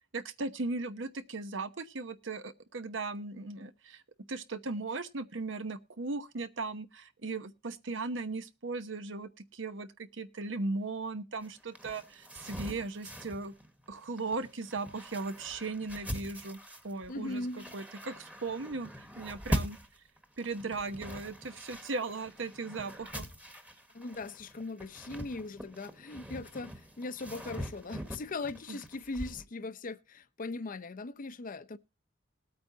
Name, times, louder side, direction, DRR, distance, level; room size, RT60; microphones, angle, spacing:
voice 1, 0.1-4.0 4.3-13.5 13.9-16.6 16.8-17.4 17.7-19.8 20.4-23.3 28.7-28.8, right 3 dB, 70° right, 1.0 m, -37 dB
sound 1, 11.4-29.4, equal, 10° right, 1.3 m, -42 dB
voice 2, 17.1-17.8 23.9-31.8, left 3 dB, 45° left, 0.6 m, -39 dB
20.0 x 8.7 x 2.7 m
head